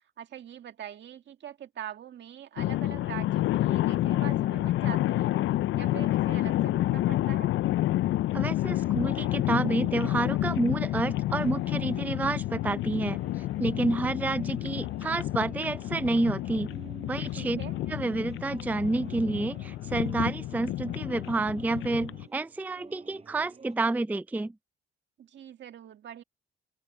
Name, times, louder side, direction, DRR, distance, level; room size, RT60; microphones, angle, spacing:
voice 1, 0.2-5.3 5.7-7.5 17.4-17.8 25.2-26.2, right 10 dB, 65° right, 2.2 m, -43 dB
sound 1, 2.6-22.3, left 15 dB, 75° left, 0.5 m, -29 dB
voice 2, 8.3-16.7 17.1-17.6 17.9-24.5, right 2 dB, 10° right, 0.4 m, -29 dB
sound 2, 8.6-23.8, right 4 dB, 30° right, 5.1 m, -53 dB
open air
cardioid pair, 90°, 20 cm